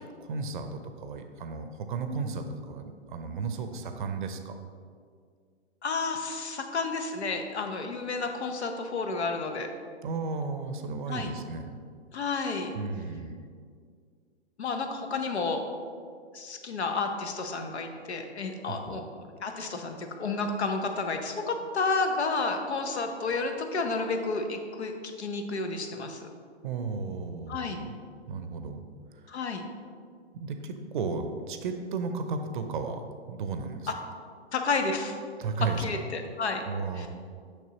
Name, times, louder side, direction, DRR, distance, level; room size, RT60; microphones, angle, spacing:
voice 1, 0.2-4.6 10.0-11.8 12.7-13.3 18.7-19.0 26.6-27.9 28.3-28.8 29.1-29.3 30.3-33.9 35.4-35.8 36.7-37.1, right 4 dB, 45° right, 8 dB, 0.6 m, -34 dB
voice 2, 5.8-9.7 11.1-11.3 12.1-12.7 14.6-15.6 16.3-19.0 19.4-24.9 25.2-26.3 27.5-27.8 29.3-29.6 34.5-35.2 35.8-36.6 37.0-37.1, left 3 dB, 70° left, 5 dB, 0.9 m, -31 dB
6.6 x 6.2 x 2.9 m, 2.1 s
figure-of-eight pair, 125°, 34 cm